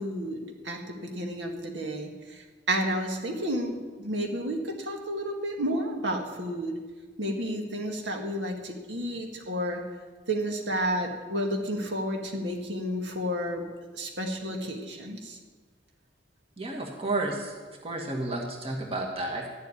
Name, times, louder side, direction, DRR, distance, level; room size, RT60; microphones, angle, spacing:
voice 1, 0.0-6.7 7.2-9.8 10.3-13.6 13.9-15.4, equal, 75° right, 2 dB, 2.1 m, -31 dB
voice 2, 16.6-17.5 17.8-19.5, right 2 dB, 30° right, 1 dB, 2.0 m, -31 dB
13.0 x 8.2 x 9.9 m, 1.4 s
head